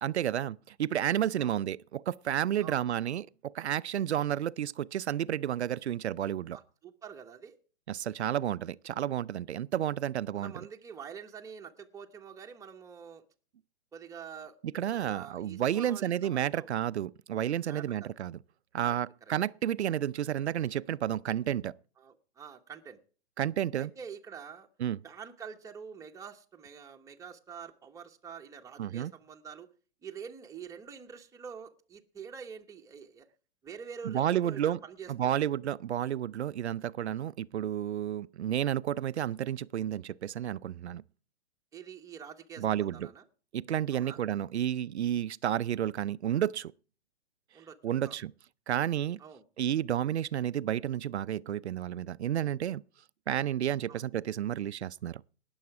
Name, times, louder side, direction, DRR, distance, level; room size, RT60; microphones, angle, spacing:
voice 1, 0.0-6.6 7.9-10.5 14.6-18.4 18.7-21.7 23.4-23.9 24.8-25.0 28.8-29.1 34.0-34.8 35.1-41.0 42.6-43.1 43.5-46.7 47.8-48.3 48.7-49.2 49.6-52.8 53.3-55.2, right 10 dB, 85° right, 0.5 m, -31 dB
voice 2, 6.5-7.6 10.4-13.2 13.9-14.6 15.0-16.7 17.7-18.1 18.8-19.0 22.0-23.0 23.8-24.7 25.0-29.7 30.0-33.3 33.6-35.5 41.7-43.2 43.9-44.2 47.5-48.2 49.2-49.4 53.9-54.0, right 7 dB, 10° right, 1.1 m, -46 dB
18.5 x 7.1 x 4.7 m
hypercardioid pair, 130°, 32 cm